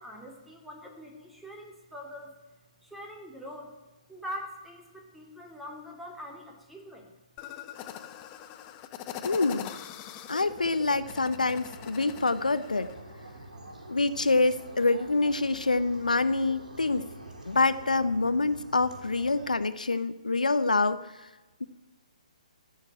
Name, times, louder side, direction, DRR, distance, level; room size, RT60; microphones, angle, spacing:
voice 1, 0.0-2.3 2.8-3.7 4.1-7.1, equal, ahead, 0 dB, 2.8 m, -43 dB
sound 1, 7.4-13.0, left 10 dB, 25° left, 0.8 m, -42 dB
voice 2, 9.2-9.7 10.3-12.9 13.9-17.1 17.4-21.0 21.6-21.7, left 3 dB, 80° left, 13 dB, 0.8 m, -26 dB
sound 2, 10.4-19.6, right 1 dB, 80° right, 4.0 m, -46 dB
14.5 x 6.9 x 9.1 m, 1.1 s
figure-of-eight pair, 135°, 4 cm